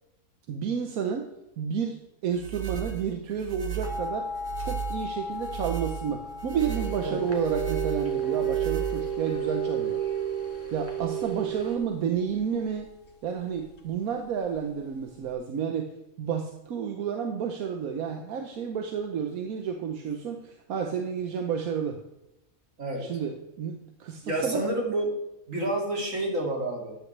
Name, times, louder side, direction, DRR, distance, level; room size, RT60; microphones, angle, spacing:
voice 1, 0.5-1.3 1.6-4.3 4.6-10.0 10.7-12.9 13.2-15.9 16.2-22.0 23.0-24.6, right 7 dB, 90° right, 4 dB, 1.4 m, -31 dB
sound 1, 2.3-9.4, right 12 dB, 50° right, 1.4 m, -36 dB
sound 2, 3.8-15.3, left 3 dB, 65° left, 1.7 m, -40 dB
sound 3, 6.5-11.8, right 8 dB, 10° right, 1.7 m, -30 dB
voice 2, 24.2-25.2 25.5-27.0, right 1 dB, 65° right, 0 dB, 2.8 m, -29 dB
13.0 x 9.8 x 3.3 m, 0.89 s
omnidirectional pair, 1.5 m